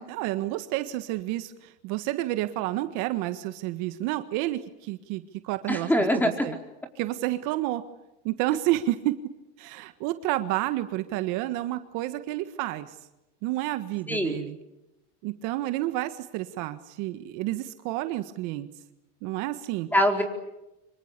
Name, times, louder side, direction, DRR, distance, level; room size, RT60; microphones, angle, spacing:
voice 1, 0.0-5.9 6.1-6.5 6.9-7.8 8.2-9.1 9.6-12.9 13.4-14.6 15.2-18.7 19.2-19.9, right 16 dB, 60° right, 10 dB, 1.6 m, -30 dB
voice 2, 5.7-6.5 14.1-14.4 19.9-20.2, equal, 5° left, 4 dB, 4.5 m, -23 dB
26.0 x 24.5 x 8.3 m, 0.94 s
supercardioid pair, 125°, 35 cm